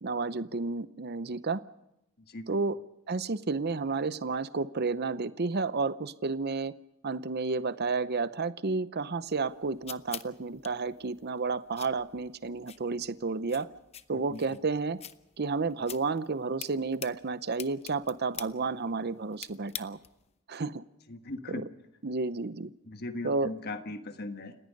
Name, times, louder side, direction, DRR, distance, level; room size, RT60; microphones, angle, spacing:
voice 1, 0.0-1.6 2.5-2.8 3.1-6.7 7.0-13.7 14.1-15.0 15.4-20.0 20.5-20.8 21.5-21.6 22.0-22.7 23.2-23.5, right 4 dB, 45° right, 15 dB, 0.7 m, -31 dB
voice 2, 2.2-2.6 14.1-14.6 21.1-21.6 22.8-24.6, left 2 dB, 45° left, 7 dB, 1.5 m, -39 dB
sound 1, 9.3-20.3, left 9 dB, 30° left, 0.7 m, -47 dB
29.5 x 17.0 x 5.4 m, 0.87 s
head